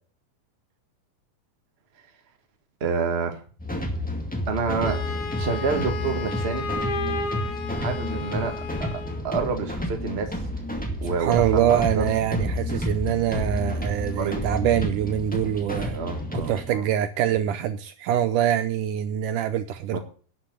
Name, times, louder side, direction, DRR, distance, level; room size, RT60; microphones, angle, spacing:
voice 1, 2.8-3.4 4.5-5.0 5.4-6.7 7.7-10.4 11.0-12.1 14.1-14.4 15.9-16.9 19.9-20.0, right 5 dB, 40° right, 5 dB, 0.9 m, -28 dB
sound 1, 3.6-16.7, left 1 dB, 5° left, 0.7 m, -30 dB
Wind instrument woodwind instrument, 4.8-9.2, left 3 dB, 65° left, 2.4 m, -33 dB
voice 2, 11.2-16.0 16.3-20.0, right 11 dB, 80° right, 12 dB, 1.9 m, -24 dB
11.5 x 6.7 x 8.1 m, 0.42 s
omnidirectional pair, 4.1 m